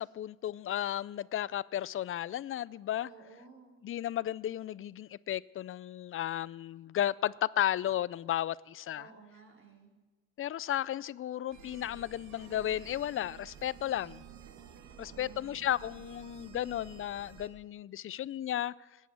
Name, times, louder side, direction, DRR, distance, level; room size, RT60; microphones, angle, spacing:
voice 1, 0.0-3.1 3.8-9.1 10.4-14.2 15.0-18.7, left 12 dB, 45° left, 21 dB, 0.4 m, -34 dB
voice 2, 3.0-3.8 8.9-9.9 14.9-15.6, right 5 dB, 45° right, -2 dB, 4.7 m, -55 dB
sound 1, 11.5-17.5, right 9 dB, 75° right, 1.4 m, -52 dB
19.0 x 8.3 x 7.7 m, 1.2 s
cardioid pair, 90°, 30 cm